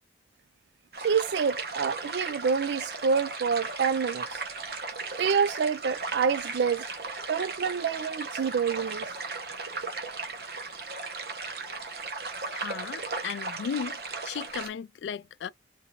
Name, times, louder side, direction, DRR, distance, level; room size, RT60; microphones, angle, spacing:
sound 1, 0.9-14.7, right 3 dB, 60° right, 1.0 m, -36 dB
voice 1, 1.0-4.4 5.2-6.8 7.3-9.1, right 6 dB, 75° right, 0.4 m, -27 dB
voice 2, 12.5-14.0 14.2-15.5, left 7 dB, 85° left, 0.3 m, -35 dB
3.7 x 2.6 x 2.9 m
head